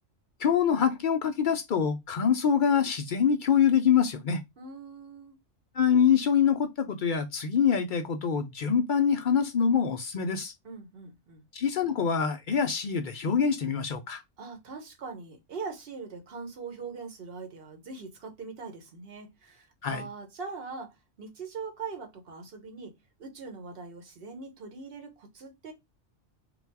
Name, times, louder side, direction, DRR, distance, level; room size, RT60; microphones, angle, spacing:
voice 1, 0.4-4.4 5.7-10.5 11.5-14.2 19.8-20.1, left 7 dB, 60° left, 0.5 m, -25 dB
voice 2, 4.6-5.4 10.6-11.4 14.4-25.7, right 4 dB, 50° right, 1.2 m, -42 dB
3.9 x 2.3 x 4.5 m
omnidirectional pair, 1.3 m